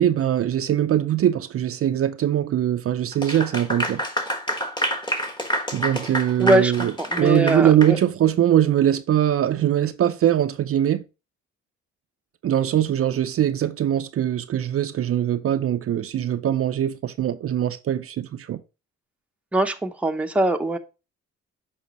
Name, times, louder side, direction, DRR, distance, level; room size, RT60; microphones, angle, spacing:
voice 1, 0.0-4.0 5.7-11.0 12.4-18.6, right 11 dB, 50° right, 0.5 m, -22 dB
Clapping / Applause, 3.1-8.0, equal, 15° left, 1.3 m, -28 dB
voice 2, 6.4-8.0 19.5-20.8, right 1 dB, 5° right, 0.7 m, -22 dB
7.1 x 5.0 x 3.0 m
cardioid pair, 90°, 30 cm